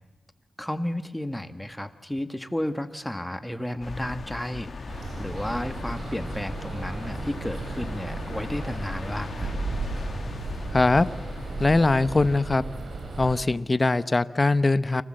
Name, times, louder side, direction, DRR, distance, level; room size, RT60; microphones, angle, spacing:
voice 1, 0.6-9.5, left 1 dB, 10° left, 8 dB, 1.8 m, -32 dB
sound 1, 3.8-12.4, left 4 dB, 60° left, 1.3 m, -39 dB
sound 2, 4.9-13.4, right 3 dB, 75° right, 6.4 m, -34 dB
voice 2, 10.7-11.1 11.6-12.6 13.2-15.0, left 3 dB, 30° left, 13 dB, 1.0 m, -21 dB
29.5 x 24.5 x 7.8 m, 1.1 s
cardioid pair, 70°, 0 cm